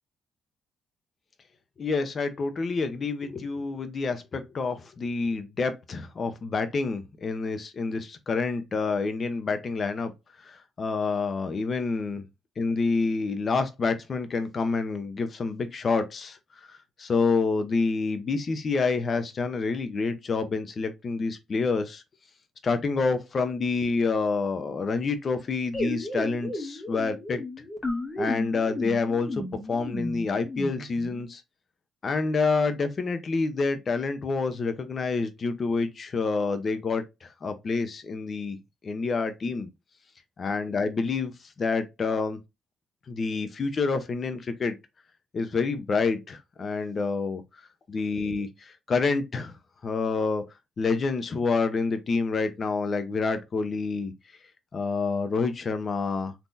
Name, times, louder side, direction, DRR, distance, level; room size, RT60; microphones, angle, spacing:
voice 1, 1.8-10.1 10.4-12.2 12.6-16.4 16.7-22.0 22.6-27.4 28.2-31.4 32.0-38.6 38.8-39.7 40.4-41.3 41.6-42.4 43.1-44.8 45.3-47.4 47.9-49.5 49.8-50.4 50.8-54.1 54.7-56.3, left 4 dB, 45° left, 0.7 m, -28 dB
sound 1, 25.7-31.2, left 1 dB, 15° left, 1.1 m, -34 dB
3.7 x 2.8 x 2.6 m
cardioid pair, 90°, 0 cm